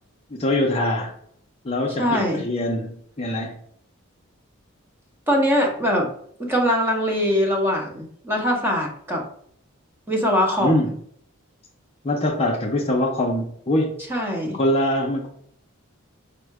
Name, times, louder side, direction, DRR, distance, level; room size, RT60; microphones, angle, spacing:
voice 1, 0.3-1.1 1.6-3.6 10.6-10.9 12.0-14.0 14.5-15.3, left 1 dB, 30° left, 0 dB, 0.5 m, -23 dB
voice 2, 2.0-2.4 5.3-6.1 6.4-9.3 10.1-10.9 14.1-14.6, equal, 10° right, 0 dB, 0.8 m, -22 dB
5.6 x 2.1 x 4.6 m, 0.66 s
head